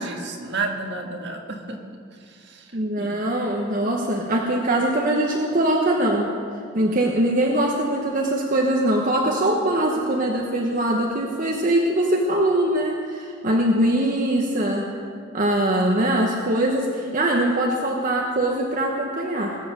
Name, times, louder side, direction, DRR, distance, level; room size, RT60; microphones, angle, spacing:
voice 1, 0.0-1.8 2.5-2.7 3.0-3.1, right 3 dB, 60° right, 3 dB, 1.6 m, -30 dB
voice 2, 2.7-6.3 6.7-14.9 15.3-19.6, right 1 dB, 45° right, 0 dB, 1.1 m, -22 dB
20.0 x 7.6 x 6.4 m, 2.2 s
head